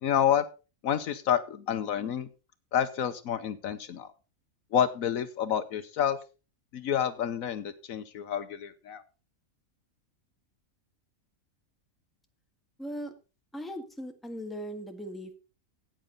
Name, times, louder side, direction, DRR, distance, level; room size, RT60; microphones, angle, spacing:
voice 1, 0.0-0.4 0.8-2.3 2.7-4.1 4.7-6.2 6.7-9.0, left 9 dB, 70° left, 11 dB, 1.2 m, -28 dB
voice 2, 12.8-13.1 13.5-15.4, equal, ahead, 4 dB, 1.5 m, -38 dB
14.0 x 9.0 x 3.9 m, 0.32 s
omnidirectional pair, 1.5 m